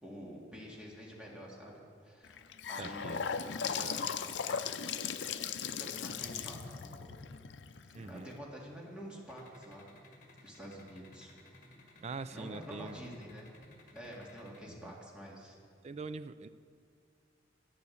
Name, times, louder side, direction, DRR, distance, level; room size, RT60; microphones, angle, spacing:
voice 1, 0.0-3.3 3.6-4.1 5.6-7.1 8.0-9.9 10.4-11.3 12.3-13.5 13.9-15.5, equal, 5° right, -4 dB, 2.1 m, -48 dB
Gurgling / Sink (filling or washing) / Bathtub (filling or washing), 2.2-8.3, left 7 dB, 85° left, 0.5 m, -38 dB
voice 2, 2.8-3.2 7.9-8.3 12.0-13.0 14.7-15.0 15.8-16.5, right 4 dB, 35° right, 14 dB, 0.3 m, -43 dB
sound 1, 9.3-14.6, left 2 dB, 45° left, 1.7 m, -57 dB
10.0 x 9.5 x 7.1 m, 2.3 s
head